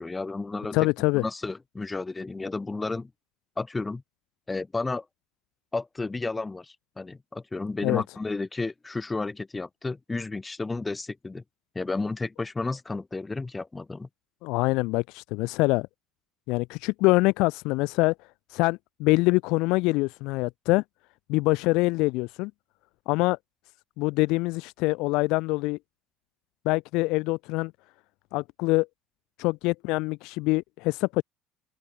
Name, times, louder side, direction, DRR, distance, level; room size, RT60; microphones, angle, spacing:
voice 1, 0.0-0.8 1.1-3.1 3.6-4.0 4.5-5.0 5.7-11.4 11.7-14.1, left 3 dB, 15° left, 4.6 m, -32 dB
voice 2, 0.7-1.2 7.8-8.0 14.4-15.9 16.5-18.1 18.5-20.8 21.3-22.5 23.1-23.4 24.0-25.8 26.6-27.7 28.3-28.9 29.4-31.2, left 23 dB, 70° left, 0.6 m, -24 dB
open air
supercardioid pair, 95°, 0 cm